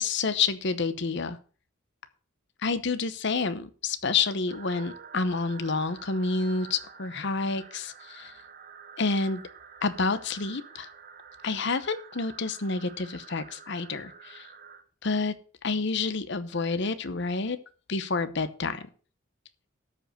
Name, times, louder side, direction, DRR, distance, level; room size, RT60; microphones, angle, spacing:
voice 1, 0.0-1.4 2.6-8.3 9.0-9.4 9.8-10.9 11.4-14.5 15.0-15.3 15.6-17.6 17.9-18.9, left 4 dB, 60° left, 12 dB, 0.9 m, -29 dB
sound 1, 4.5-14.8, right 6 dB, 45° right, 1.2 m, -49 dB
13.0 x 5.2 x 6.4 m, 0.40 s
head